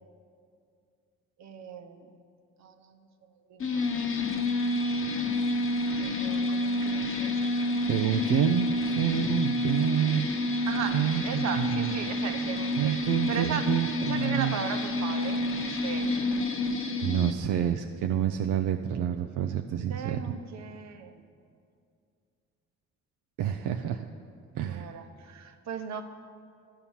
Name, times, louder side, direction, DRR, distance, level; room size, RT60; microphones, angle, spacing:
voice 1, 1.4-2.1 2.6-3.1 3.5-3.6 6.0-7.9 10.7-13.0 13.3-13.7 14.0-16.1 19.9-21.2 24.7-26.0, right 7 dB, 65° right, 6 dB, 0.9 m, -37 dB
sound 1, 3.6-17.3, left 1 dB, 45° left, 0.9 m, -29 dB
voice 2, 7.8-10.3 10.9-11.9 12.8-14.5 17.0-20.2 23.4-24.1 24.5-24.9, right 10 dB, 85° right, 5 dB, 0.5 m, -28 dB
12.5 x 5.7 x 7.2 m, 2.3 s
cardioid pair, 90°, 30 cm